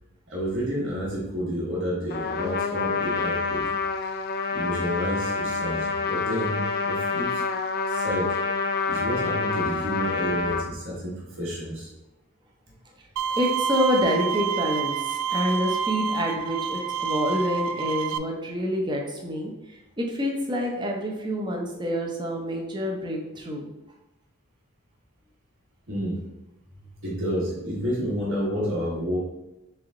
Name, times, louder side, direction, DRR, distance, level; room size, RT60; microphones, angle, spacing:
voice 1, 0.3-3.7 4.5-7.4 7.9-8.4 8.9-11.9 25.9-26.2 27.0-29.2, equal, 60° right, -6 dB, 1.3 m, -30 dB
Trumpet, 2.1-10.7, left 4 dB, 45° left, 0.4 m, -27 dB
Bowed string instrument, 13.2-18.2, right 6 dB, 90° right, 0.3 m, -28 dB
voice 2, 13.4-23.7, equal, 20° right, 0 dB, 0.7 m, -27 dB
3.4 x 3.4 x 3.7 m, 0.95 s
head